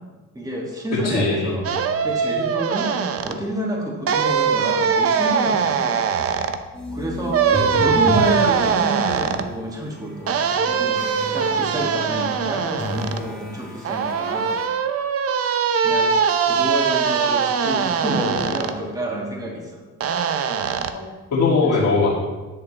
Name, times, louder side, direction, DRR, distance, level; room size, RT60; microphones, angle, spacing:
voice 1, 0.3-2.9 3.2-6.0 6.9-7.4 7.8-14.6 15.8-16.1 16.4-19.8 21.6-21.7, right 1 dB, 10° right, -3 dB, 2.4 m, -28 dB
voice 2, 0.9-1.5 7.5-8.2 20.9-22.1, left 3 dB, 60° left, -8 dB, 2.5 m, -21 dB
sound 1, 1.6-3.3 4.1-6.6 7.3-9.5 10.3-13.2 13.8-18.7 20.0-20.9, right 6 dB, 50° right, 0.7 m, -21 dB
sound 2, 6.7-14.7, left 1 dB, 5° left, 1.9 m, -36 dB
10.5 x 6.6 x 3.4 m, 1.2 s
cardioid pair, 90°, 30 cm